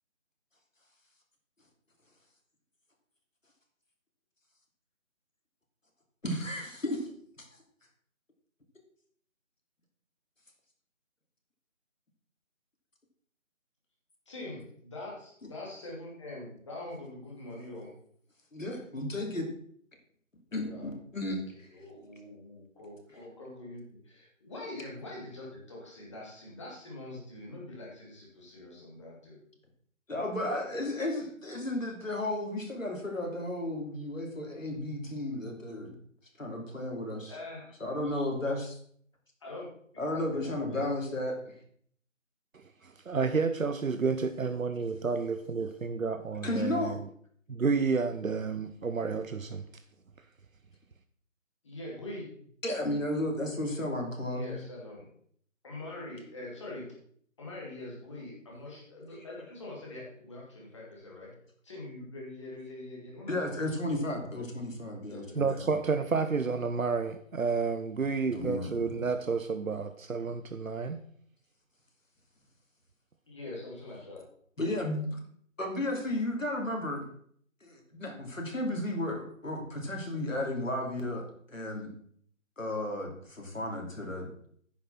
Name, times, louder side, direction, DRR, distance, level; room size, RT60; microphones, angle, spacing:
voice 1, 6.2-7.1 7.4-7.5 18.5-19.5 20.5-21.4 30.1-35.9 36.4-37.4 37.8-38.8 40.0-41.4 46.4-47.0 52.6-54.6 63.3-65.7 68.3-69.1 74.6-75.2 75.6-77.1 77.6-81.9 82.6-84.3, left 1 dB, 75° left, 3.1 m, -33 dB
voice 2, 14.3-17.9 20.5-20.9 21.7-29.4 30.6-30.7 37.3-38.2 39.4-39.7 40.1-40.8 51.6-52.5 54.3-55.1 55.6-56.9 57.4-61.3 61.6-63.5 64.2-64.4 65.1-66.0 73.3-74.2, left 2 dB, 20° left, 2.6 m, -44 dB
voice 3, 42.5-47.0 47.5-49.6 65.3-71.0, right 4 dB, 85° right, 0.9 m, -30 dB
9.6 x 6.4 x 5.8 m
figure-of-eight pair, 165°, 39 cm